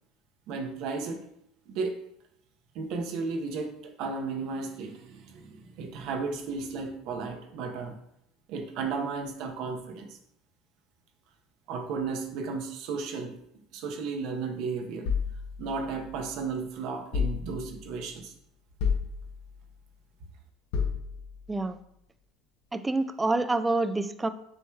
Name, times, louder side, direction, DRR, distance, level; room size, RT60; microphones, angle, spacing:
voice 1, 0.5-1.3 1.7-2.0 2.7-7.9 8.5-10.2 11.7-13.4 13.7-15.1 15.6-18.3, right 4 dB, 65° right, 4 dB, 0.8 m, -34 dB
sound 1, 15.0-16.4 17.1-18.0 18.8-19.7 20.7-21.5, left 6 dB, 70° left, 0.7 m, -32 dB
voice 2, 22.7-24.3, right 2 dB, 15° right, 11 dB, 0.3 m, -27 dB
6.3 x 3.1 x 2.3 m, 0.76 s
supercardioid pair, 95°, 0 cm